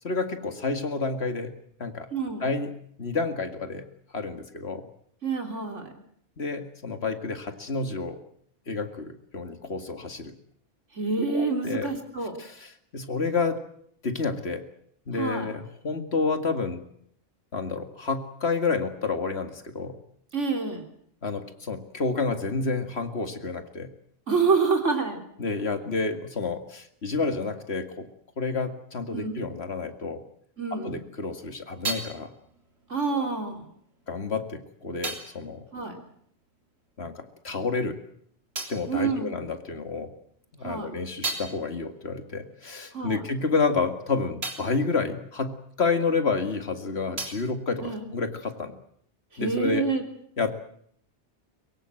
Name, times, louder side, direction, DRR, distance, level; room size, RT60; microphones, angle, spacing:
voice 1, 0.0-1.5 1.8-2.1 2.4-3.8 4.1-4.8 6.4-8.2 8.7-10.3 11.3-11.9 12.4-13.6 14.0-14.6 15.1-16.8 17.5-20.0 21.2-23.9 25.4-28.1 28.4-30.2 30.8-32.3 33.1-33.3 34.1-35.6 37.0-38.0 38.7-40.1 40.6-48.8 49.4-49.9 50.4-50.5, left 4 dB, 60° left, 7 dB, 2.3 m, -29 dB
voice 2, 2.1-2.4 5.2-5.9 10.9-12.3 15.1-15.5 20.3-20.9 24.3-25.2 29.1-29.5 30.6-31.0 32.9-33.6 35.7-36.0 38.9-39.4 40.6-40.9 42.9-43.2 47.8-48.0 49.3-50.0, right 4 dB, 90° right, 4 dB, 3.8 m, -27 dB
sound 1, 31.1-37.0 37.3-40.0 40.4-46.4 46.7-48.7, right 3 dB, 60° right, 4.0 m, -40 dB
23.5 x 23.0 x 7.8 m, 0.67 s
omnidirectional pair, 1.2 m